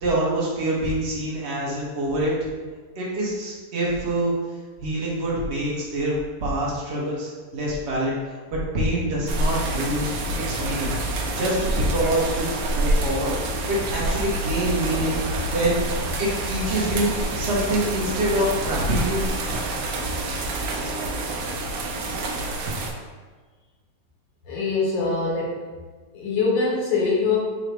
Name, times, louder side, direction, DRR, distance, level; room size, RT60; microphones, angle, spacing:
voice 1, 0.0-2.3 3.0-4.3 4.8-10.9 11.3-13.3 13.7-15.2 15.5-15.8 16.2-19.2, right 1 dB, 45° right, -5 dB, 0.9 m, -25 dB
sound 1, 9.3-22.9, right 1 dB, 75° right, 1.2 m, -27 dB
voice 2, 24.5-25.6 26.1-27.4, left 4 dB, 75° left, -4 dB, 1.7 m, -23 dB
3.9 x 2.1 x 4.5 m, 1.4 s
omnidirectional pair, 2.0 m